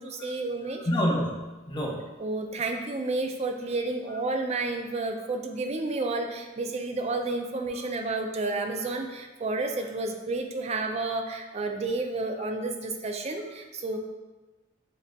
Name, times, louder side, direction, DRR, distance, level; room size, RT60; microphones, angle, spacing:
voice 1, 0.0-0.9 2.2-14.0, right 2 dB, 35° right, 4 dB, 0.4 m, -31 dB
voice 2, 0.9-2.0, equal, 25° left, -2 dB, 0.7 m, -27 dB
7.2 x 2.7 x 2.2 m, 1.2 s
head